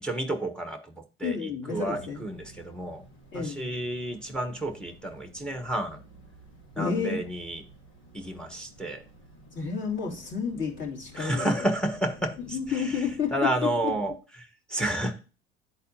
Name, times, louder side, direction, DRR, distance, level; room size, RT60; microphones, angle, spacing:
voice 1, 0.0-3.0 3.3-6.0 6.7-7.6 8.1-9.0 11.1-13.1 13.3-14.1 14.4-15.2, right 1 dB, 5° left, 1.0 m, -31 dB
voice 2, 1.2-2.3 3.3-3.7 6.8-7.2 9.5-11.7 12.4-13.9, left 6 dB, 40° left, 2.7 m, -31 dB
sound 1, 1.8-14.1, equal, 80° left, 2.4 m, -52 dB
10.5 x 4.1 x 2.7 m
hypercardioid pair, 65°, 31 cm